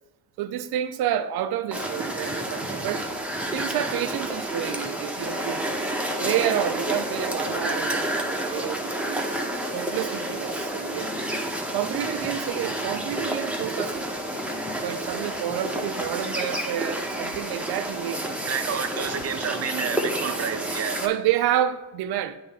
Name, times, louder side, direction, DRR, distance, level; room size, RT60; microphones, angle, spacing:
voice 1, 0.4-3.1 3.5-9.3 9.7-11.1 11.7-14.0 14.8-18.5 20.0-20.2 21.0-22.4, right 11 dB, 80° right, 0.5 m, -29 dB
sound 1, 1.7-21.1, right 1 dB, 5° right, 0.8 m, -30 dB
voice 2, 18.5-21.0, right 8 dB, 40° right, 0.6 m, -30 dB
8.6 x 3.0 x 4.1 m
cardioid pair, 75°, 37 cm